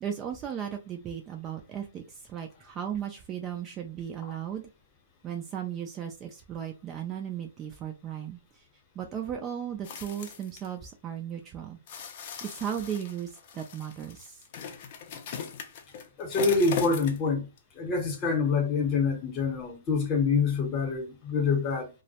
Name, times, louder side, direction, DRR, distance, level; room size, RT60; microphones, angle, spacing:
voice 1, 0.0-4.7 5.2-8.4 9.0-11.8 12.4-14.4, right 9 dB, 20° right, 0.3 m, -36 dB
sound 1, 9.8-10.7 11.9-17.3 17.6-17.7, left 7 dB, 45° left, 0.5 m, -39 dB
voice 2, 16.2-17.5 17.8-21.9, left 4 dB, 25° left, 0.8 m, -26 dB
2.2 x 2.0 x 2.7 m
hypercardioid pair, 155°, 0 cm